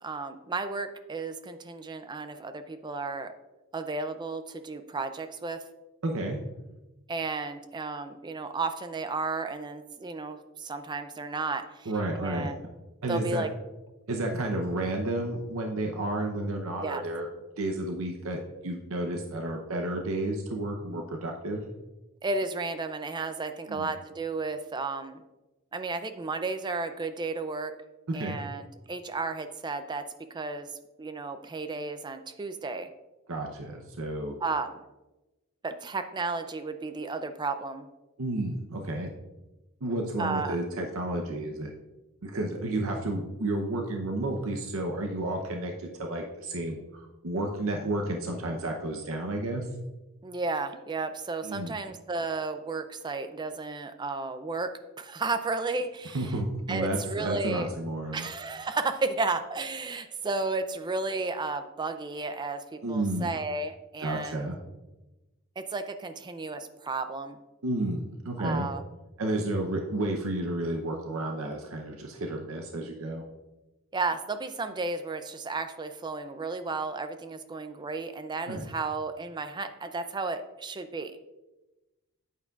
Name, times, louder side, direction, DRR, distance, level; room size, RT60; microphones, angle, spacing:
voice 1, 0.0-3.3 3.7-5.6 7.1-12.6 13.1-13.5 16.8-17.0 22.2-25.2 25.7-27.7 28.1-30.0 30.3-32.9 34.4-34.8 35.6-37.9 40.2-40.6 50.2-54.7 55.0-56.3 56.7-57.7 58.1-64.5 65.6-67.4 68.4-68.8 73.9-81.2, right 3 dB, 20° right, 9 dB, 0.4 m, -33 dB
voice 2, 6.0-6.4 11.9-12.5 13.0-13.4 14.1-17.3 17.6-21.6 23.7-23.9 28.1-28.4 33.3-34.4 38.2-39.1 39.8-41.7 42.2-49.7 51.4-51.7 56.1-58.3 62.8-63.3 64.0-64.6 67.6-68.7 69.2-73.2 78.5-78.7, right 1 dB, 65° right, 2 dB, 0.7 m, -31 dB
8.9 x 8.3 x 2.4 m, 1.1 s
head